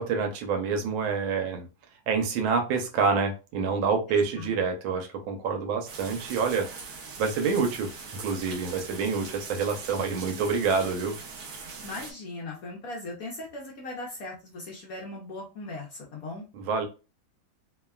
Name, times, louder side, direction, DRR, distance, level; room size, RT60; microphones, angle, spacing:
voice 1, 0.0-1.7 2.1-6.7 7.2-11.2 16.5-16.9, right 5 dB, 85° right, 4 dB, 1.5 m, -27 dB
sound 1, 5.9-12.1, right 4 dB, 65° right, 1.0 m, -41 dB
voice 2, 11.8-16.4, left 2 dB, 65° left, -2 dB, 0.9 m, -38 dB
3.4 x 2.2 x 2.3 m, 0.31 s
omnidirectional pair, 2.2 m